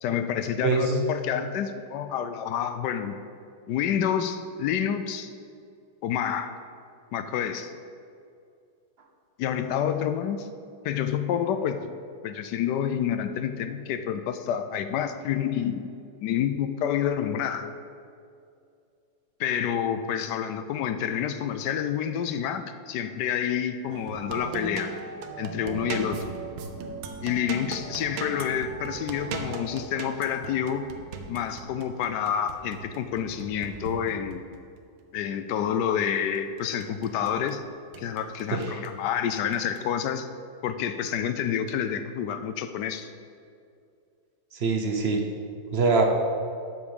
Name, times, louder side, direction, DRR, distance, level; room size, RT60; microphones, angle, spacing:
voice 1, 0.0-3.2 3.7-5.3 6.0-6.5 7.1-7.7 9.4-10.5 10.8-11.9 12.2-15.9 16.2-17.7 19.4-24.9 25.4-26.3 27.2-30.9 31.3-34.5 35.1-37.6 38.0-40.3 40.6-43.1, left 9 dB, 75° left, 9 dB, 1.1 m, -28 dB
voice 2, 0.6-0.9 38.5-38.8 44.5-45.2 45.7-46.0, right 4 dB, 50° right, 3 dB, 0.7 m, -23 dB
sound 1, 23.9-34.6 36.3-37.6 37.9-39.0 39.5-39.8, right 4 dB, 85° right, 1.5 m, -38 dB
7.8 x 6.1 x 7.1 m, 2.4 s
omnidirectional pair, 2.1 m